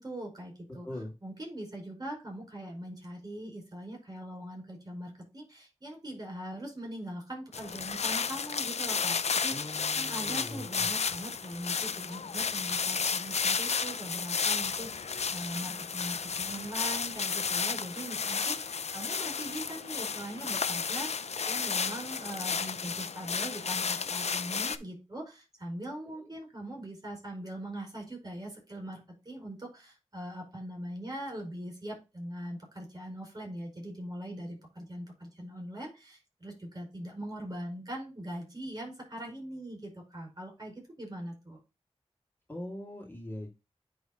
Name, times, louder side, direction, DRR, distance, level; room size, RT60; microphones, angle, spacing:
voice 1, 0.0-0.9 1.2-9.5 9.9-41.6, right 1 dB, 35° right, 0 dB, 4.8 m, -41 dB
sound 1, 7.5-24.8, left 5 dB, 75° left, 0.5 m, -32 dB
voice 2, 9.5-10.9 26.0-26.3 42.5-43.5, left 1 dB, 20° left, -2 dB, 2.5 m, -41 dB
9.8 x 3.6 x 3.9 m, 0.26 s
wide cardioid pair, 70°, 11 cm